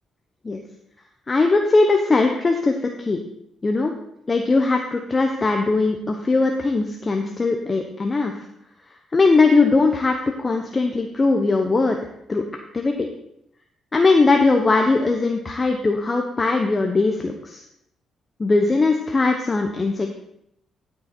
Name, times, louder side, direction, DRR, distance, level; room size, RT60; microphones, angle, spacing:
voice 1, 1.3-3.2 3.6-3.9 4.3-8.3 9.1-12.0 12.3-12.4 12.7-13.1 13.9-17.6 18.4-20.1, left 3 dB, 30° left, 3 dB, 1.0 m, -20 dB
13.0 x 6.4 x 4.4 m, 0.75 s
cardioid pair, 90°, 0 cm